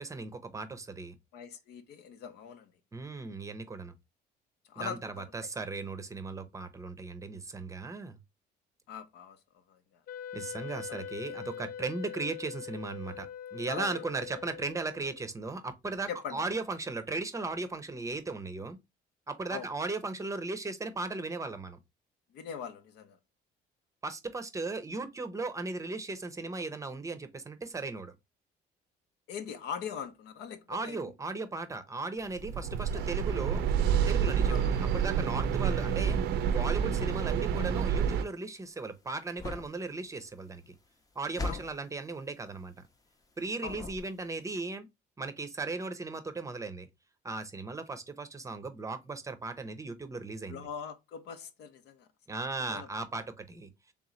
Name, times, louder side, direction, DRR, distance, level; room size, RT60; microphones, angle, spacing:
voice 1, 0.0-1.2 2.9-3.9 4.8-8.2 10.3-18.8 19.3-21.8 24.0-28.1 30.7-33.6 34.0-36.2 36.5-40.7 41.2-42.7 43.4-44.9 45.2-46.9 47.2-50.7 52.3-53.7, right 3 dB, 20° right, 0.6 m, -37 dB
voice 2, 1.3-2.7 4.7-5.5 8.9-9.4 9.7-9.8 10.9-11.0 13.7-14.0 16.1-16.4 19.5-19.7 22.3-23.2 29.3-31.1 34.4-34.7 41.5-41.6 43.6-43.9 50.5-52.4 52.7-52.9, left 7 dB, 80° left, 0.8 m, -41 dB
Wind instrument woodwind instrument, 10.1-15.3, left 8 dB, 60° left, 0.4 m, -43 dB
sound 1, 32.1-43.3 43.6-44.5, left 3 dB, 20° left, 0.7 m, -44 dB
sound 2, 32.4-38.2, right 7 dB, 75° right, 0.5 m, -28 dB
3.5 x 3.0 x 3.8 m
cardioid pair, 110°, 17 cm